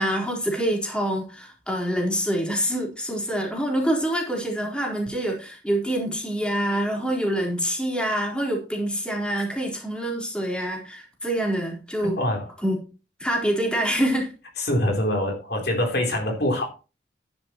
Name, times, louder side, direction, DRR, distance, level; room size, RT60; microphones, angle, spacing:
voice 1, 0.0-12.2 12.6-12.8 13.2-14.3, right 1 dB, 5° left, 3.9 m, -26 dB
voice 2, 12.2-12.5 14.6-16.6, left 1 dB, 60° left, 3.6 m, -24 dB
13.0 x 10.5 x 3.0 m
head